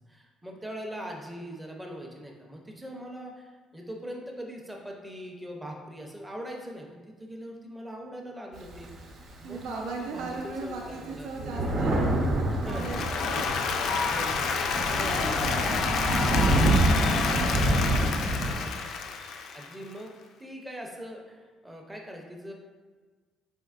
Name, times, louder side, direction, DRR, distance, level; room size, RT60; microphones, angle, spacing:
voice 1, 0.1-9.1 9.4-11.8 12.5-12.9 14.1-14.6 14.9-16.1 18.4-18.8 19.5-22.5, equal, 5° right, 0 dB, 0.5 m, -41 dB
Thunder, 8.6-9.8 10.4-10.5 10.7-18.5, right 1 dB, 50° right, 0.8 m, -27 dB
voice 2, 9.4-13.4 14.9-18.5, right 3 dB, 85° right, 0 dB, 0.6 m, -39 dB
Applause, 12.7-19.9, left 5 dB, 55° left, 0.3 m, -29 dB
4.7 x 4.3 x 2.4 m, 1.4 s
cardioid pair, 170°, 0 cm